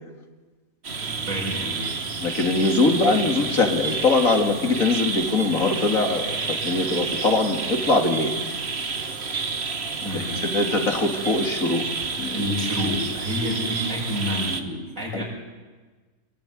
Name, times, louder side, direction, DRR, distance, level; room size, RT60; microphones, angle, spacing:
sound 1, 0.8-14.6, right 4 dB, 50° right, 1.7 m, -29 dB
voice 1, 1.1-1.9 10.0-10.3 12.3-15.3, left 1 dB, 85° right, -2 dB, 8.0 m, -29 dB
voice 2, 2.2-8.4 10.1-11.9 12.2-12.4 15.1-15.2, left 3 dB, 80° left, 4 dB, 2.9 m, -22 dB
23.0 x 22.0 x 9.4 m, 1.3 s
omnidirectional pair, 1.4 m